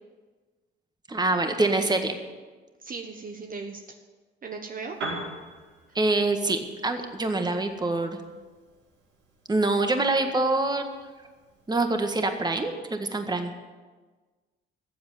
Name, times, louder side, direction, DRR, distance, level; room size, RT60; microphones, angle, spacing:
voice 1, 1.1-2.2 6.0-8.2 9.5-10.8 11.7-13.5, right 2 dB, 20° right, 6 dB, 1.8 m, -25 dB
voice 2, 2.8-3.8 4.4-5.0, right 4 dB, 45° right, 4 dB, 1.3 m, -37 dB
Piano, 4.9-12.7, right 2 dB, 90° right, 5.5 m, -44 dB
14.5 x 8.1 x 9.3 m, 1.4 s
cardioid pair, 90°, 20 cm